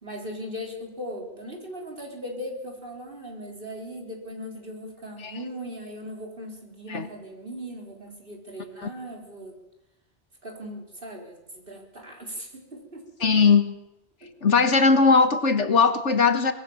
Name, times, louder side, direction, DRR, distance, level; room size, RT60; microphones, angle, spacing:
voice 1, 0.0-9.6 10.4-13.0 14.2-14.3, equal, 50° right, 1 dB, 4.6 m, -38 dB
voice 2, 13.2-13.7 14.4-16.5, left 5 dB, 85° left, 9 dB, 1.9 m, -19 dB
24.5 x 20.0 x 7.3 m, 0.95 s
omnidirectional pair, 1.2 m